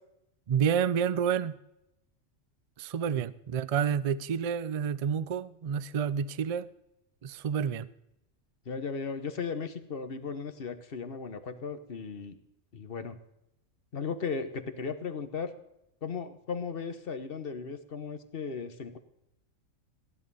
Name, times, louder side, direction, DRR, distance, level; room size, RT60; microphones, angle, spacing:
voice 1, 0.5-1.6 2.8-6.7 7.2-7.9, right 7 dB, 65° right, 17 dB, 0.3 m, -29 dB
voice 2, 8.6-12.4 12.7-13.2 13.9-15.5 16.0-19.0, left 5 dB, 45° left, 9 dB, 1.3 m, -36 dB
15.5 x 10.5 x 5.5 m, 0.85 s
omnidirectional pair, 1.4 m